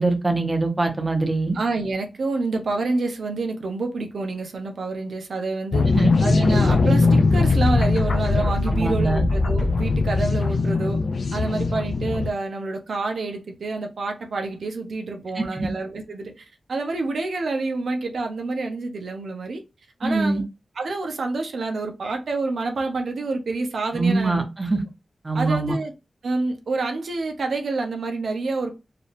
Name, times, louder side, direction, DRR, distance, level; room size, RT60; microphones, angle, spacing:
voice 1, 0.0-1.6 5.9-6.1 8.7-9.2 15.3-15.7 20.0-20.4 23.9-24.8 25.2-25.7, right 3 dB, 25° right, 1.0 m, -23 dB
voice 2, 1.5-5.9 6.2-11.0 11.3-19.6 20.0-20.4 20.8-24.5 25.3-25.9 26.2-28.8, right 3 dB, 85° right, 0.8 m, -28 dB
sound 1, 5.7-12.3, left 3 dB, 65° left, 0.5 m, -20 dB
4.6 x 2.5 x 3.4 m
wide cardioid pair, 110°, 0 cm